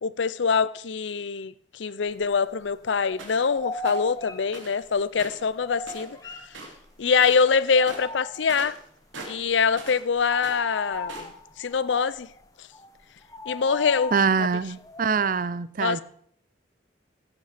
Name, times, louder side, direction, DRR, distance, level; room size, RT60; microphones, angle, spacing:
voice 1, 0.0-6.2 7.0-8.8 9.3-11.1 11.6-12.3 13.5-14.1 15.8-16.0, left 5 dB, 75° left, 0.6 m, -24 dB
sound 1, 2.1-2.8 3.1-7.0 7.4-8.7 9.1-9.3 9.6-15.4, left 3 dB, 20° left, 1.1 m, -39 dB
sound 2, 3.2-3.5 3.8-4.1 4.5-4.8 5.1-6.2 6.5-6.9 7.1-7.5 7.8-10.1 10.3-11.4, right 3 dB, 90° right, 3.1 m, -42 dB
voice 2, 14.1-16.0, right 5 dB, 45° right, 0.5 m, -24 dB
15.5 x 8.3 x 5.1 m
head